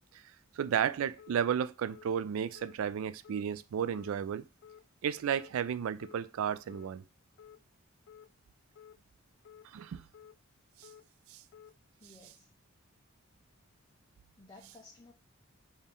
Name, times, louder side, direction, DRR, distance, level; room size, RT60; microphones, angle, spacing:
voice 1, 0.6-4.4 5.0-7.0 9.6-10.0 10.8-10.9 11.3-11.4, right 8 dB, 75° right, 0.3 m, -33 dB
sound 1, 1.2-1.4 1.9-2.1 2.6-2.8 3.2-3.5 3.9-4.1 4.6-4.8 5.3-5.5 6.0-6.2 6.7-6.9 7.4-7.6 8.1-8.3 8.8-9.0 9.4-9.7 10.1-10.4 10.8-11.0 11.5-11.7, left 8 dB, 60° left, 0.3 m, -54 dB
voice 2, 12.0-12.5 14.4-15.1, left 2 dB, 20° left, 0.6 m, -55 dB
4.2 x 3.5 x 3.6 m
head